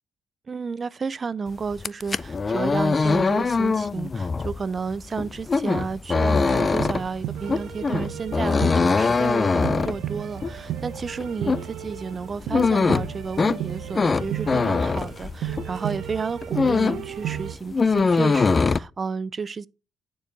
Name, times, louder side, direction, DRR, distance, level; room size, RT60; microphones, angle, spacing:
voice 1, 0.5-19.7, right 5 dB, 35° right, 0.4 m, -31 dB
sound 1, 1.7-15.8 16.1-17.1 17.4-18.8, left 4 dB, 30° left, 0.3 m, -23 dB
sound 2, 6.3-17.6, right 11 dB, 85° right, 0.6 m, -34 dB
9.5 x 4.6 x 4.6 m
cardioid pair, 90°, 0 cm